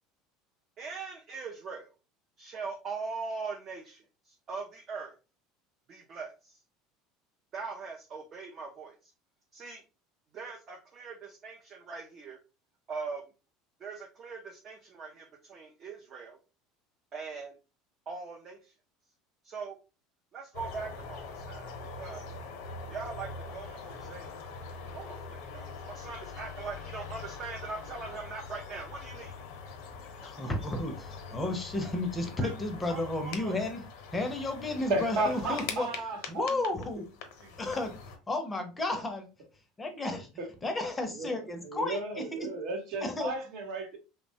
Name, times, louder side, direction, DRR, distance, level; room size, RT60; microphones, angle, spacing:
voice 1, 0.8-1.9 2.4-5.1 5.9-6.6 7.5-9.1 9.5-9.8 10.3-12.4 12.9-13.2 13.8-16.4 17.1-17.6 18.1-18.7 19.4-19.8 20.3-22.3 22.9-24.3 24.9-29.4 29.8-30.5 32.4-32.5 32.8-33.5, right 4 dB, 40° right, 0.5 m, -41 dB
sound 1, 20.5-38.2, left 4 dB, 75° left, 0.6 m, -43 dB
voice 2, 30.2-33.8 34.1-35.9 36.3-37.0 37.6-37.9 38.3-39.2 39.8-40.2 40.6-42.5 43.0-43.3, left 2 dB, 15° left, 0.6 m, -32 dB
voice 3, 34.9-36.6 37.4-37.5 40.4-40.5 41.1-44.0, right 2 dB, 65° right, 0.9 m, -34 dB
3.0 x 2.1 x 2.6 m
supercardioid pair, 120°, 0 cm